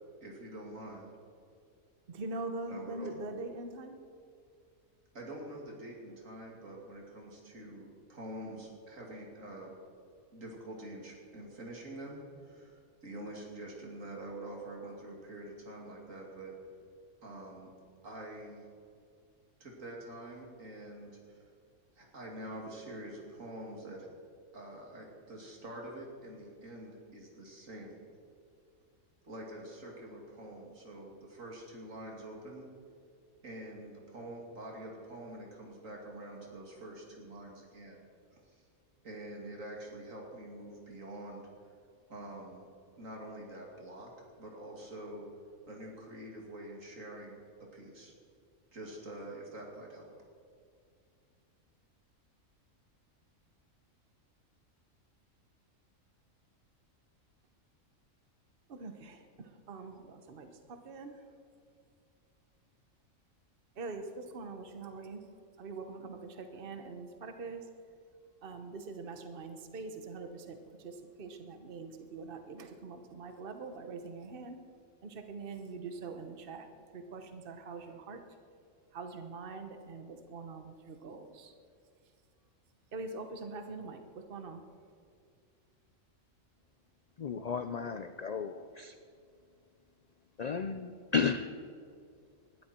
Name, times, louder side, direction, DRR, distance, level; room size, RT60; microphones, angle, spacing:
voice 1, 0.2-1.1 2.7-3.1 5.1-9.7 10.3-16.5 17.2-17.7 18.0-18.6 19.6-21.5 22.0-24.1 24.5-28.1 29.2-32.7 33.4-38.1 38.5-38.6 39.0-41.4 42.1-42.7 43.0-44.1 44.4-45.2 45.7-48.1 48.7-50.1, right 1 dB, 70° right, -1 dB, 3.0 m, -46 dB
voice 2, 2.1-4.0 58.7-61.3 63.7-65.2 65.6-67.7 68.4-74.6 75.0-78.2 78.9-81.5 82.9-84.6, right 3 dB, 45° right, 7 dB, 1.2 m, -43 dB
voice 3, 87.2-88.9 90.4-91.5, left 5 dB, 80° left, 9 dB, 0.3 m, -33 dB
20.0 x 13.0 x 4.4 m, 2.3 s
omnidirectional pair, 1.4 m